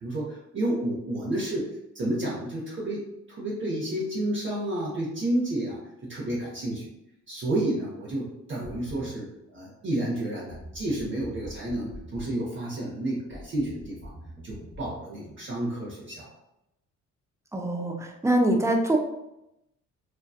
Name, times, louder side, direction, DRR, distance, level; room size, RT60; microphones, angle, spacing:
voice 1, 0.0-1.7 1.9-3.0 3.3-6.9 7.3-14.1 14.4-16.3, right 1 dB, 40° right, -5 dB, 0.7 m, -30 dB
sound 1, 7.6-7.7 8.6-9.2 10.5-12.4 13.3-14.9, equal, 5° left, 0.9 m, -44 dB
voice 2, 17.5-19.0, right 1 dB, 10° right, 3 dB, 0.3 m, -24 dB
2.7 x 2.2 x 2.3 m, 0.86 s
cardioid pair, 90°, 30 cm